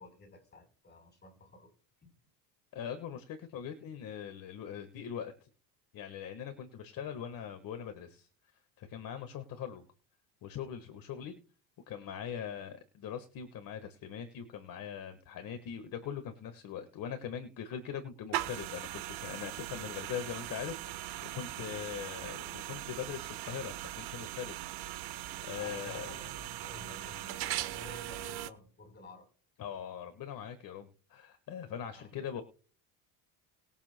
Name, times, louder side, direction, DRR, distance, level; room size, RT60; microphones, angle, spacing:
voice 1, 0.0-1.7 2.0-2.1 22.1-22.3 23.3-23.4 25.5-29.3 31.9-32.2, left 2 dB, 25° left, 5 dB, 4.1 m, -52 dB
voice 2, 2.7-5.5 5.9-8.3 8.8-9.9 10.4-11.3 11.9-24.6 24.9-26.2 29.6-32.4, left 8 dB, 50° left, 7 dB, 1.5 m, -41 dB
sound 1, 18.3-28.5, right 14 dB, 60° right, 1.0 m, -40 dB
21.0 x 7.2 x 2.2 m, 0.43 s
supercardioid pair, 110°, 44 cm